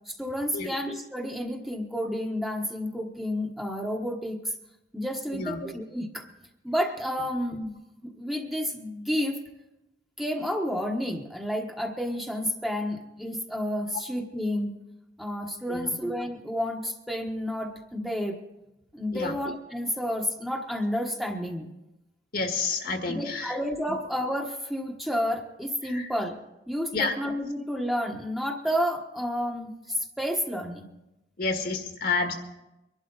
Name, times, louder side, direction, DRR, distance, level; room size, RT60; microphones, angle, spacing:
voice 1, 0.1-4.4 4.9-6.3 6.6-7.7 8.0-9.4 10.2-14.7 15.2-18.4 18.9-21.7 23.1-26.4 26.7-30.9, equal, ahead, 1 dB, 1.3 m, -30 dB
voice 2, 5.3-5.7 15.7-15.9 19.1-19.3 22.3-23.6 25.8-26.1 26.9-27.1 31.4-32.3, left 4 dB, 60° left, 4 dB, 1.7 m, -29 dB
23.5 x 11.5 x 4.0 m, 0.96 s
head